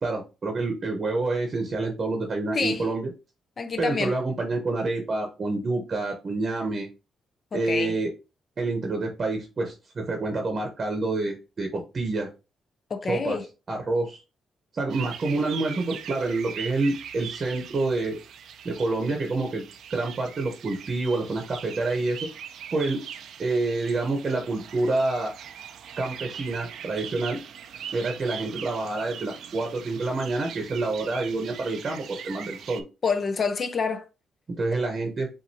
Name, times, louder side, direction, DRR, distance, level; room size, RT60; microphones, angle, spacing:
voice 1, 0.0-3.1 3.8-6.9 7.5-8.1 8.6-12.3 13.1-13.4 13.7-14.2 14.7-18.2 18.6-19.6 19.9-22.2 22.7-23.0 23.4-25.3 26.0-27.4 27.9-32.8 34.6-35.3, right 3 dB, 35° right, 0.9 m, -27 dB
voice 2, 2.5-2.8 3.6-4.2 7.5-8.0 12.9-13.5 33.0-34.0, left 5 dB, 35° left, 0.5 m, -27 dB
sound 1, 14.9-32.8, right 8 dB, 75° right, 0.4 m, -41 dB
7.3 x 2.6 x 2.8 m
cardioid pair, 145°, 0 cm